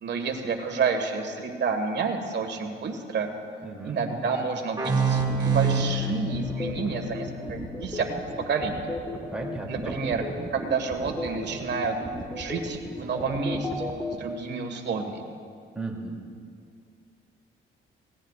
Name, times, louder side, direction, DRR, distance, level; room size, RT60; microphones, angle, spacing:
voice 1, 0.0-3.3 3.8-8.1 8.5-8.8 9.7-10.2 10.5-12.0 12.4-15.2, right 5 dB, 60° right, 5 dB, 1.6 m, -29 dB
voice 2, 3.6-4.0 9.3-10.0 15.7-16.2, right 3 dB, 5° right, -2 dB, 2.7 m, -35 dB
sound 1, 4.8-8.2, right 4 dB, 20° right, 2.0 m, -27 dB
sound 2, 5.1-14.1, left 1 dB, 10° left, 1.6 m, -34 dB
18.0 x 17.5 x 2.5 m, 2.3 s
cardioid pair, 90°, 20 cm